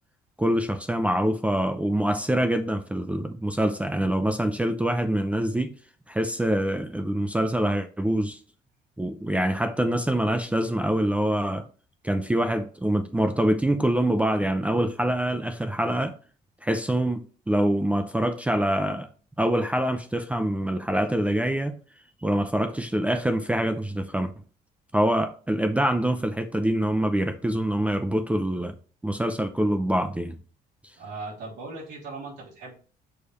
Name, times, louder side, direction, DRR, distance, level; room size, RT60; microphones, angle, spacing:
voice 1, 0.4-5.7 6.1-8.4 9.0-11.6 12.0-16.2 16.6-19.1 19.4-21.8 22.2-24.3 24.9-28.7 29.0-30.4, right 1 dB, 10° right, 0.5 m, -25 dB
voice 2, 31.0-32.7, right 3 dB, 85° right, 3.3 m, -38 dB
6.9 x 3.3 x 4.1 m
cardioid pair, 110°, 17 cm